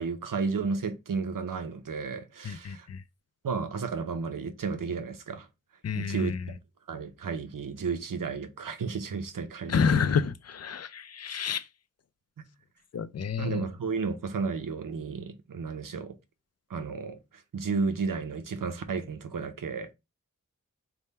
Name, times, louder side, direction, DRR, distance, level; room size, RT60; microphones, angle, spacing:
voice 1, 0.0-2.9 3.4-5.5 5.9-6.5 6.9-10.0 12.4-12.5 13.4-16.2 16.7-19.9, right 5 dB, 85° right, 0.6 m, -33 dB
voice 2, 2.5-3.0 5.8-6.5 9.7-11.6 12.9-13.6, left 6 dB, 55° left, 0.4 m, -29 dB
3.4 x 2.1 x 4.1 m
wide cardioid pair, 50°, 32 cm